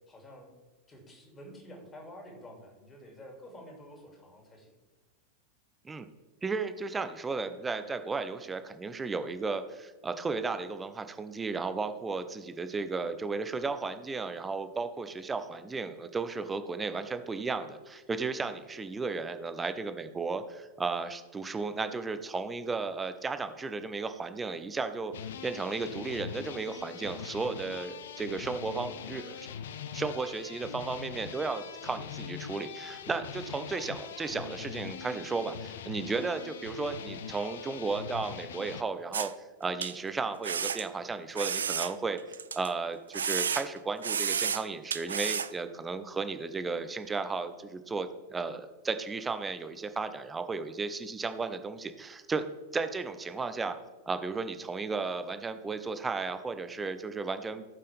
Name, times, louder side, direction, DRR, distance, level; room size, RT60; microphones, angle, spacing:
voice 1, 0.1-0.5 0.9-4.7, equal, 20° left, 2 dB, 2.5 m, -49 dB
voice 2, 6.4-25.1 25.4-29.5 29.9-39.3 39.6-42.2 42.5-52.4 52.7-53.8 54.1-57.6, right 4 dB, 15° right, 10 dB, 0.7 m, -34 dB
sound 1, 25.1-38.8, left 8 dB, 60° left, 0.5 m, -42 dB
sound 2, 39.1-39.3 39.8-39.9 40.4-40.8 41.3-42.7 43.1-43.8 44.0-44.6 44.9-45.5, right 7 dB, 70° right, 0.3 m, -31 dB
16.5 x 5.6 x 3.4 m, 1.3 s
figure-of-eight pair, 90°, 0 cm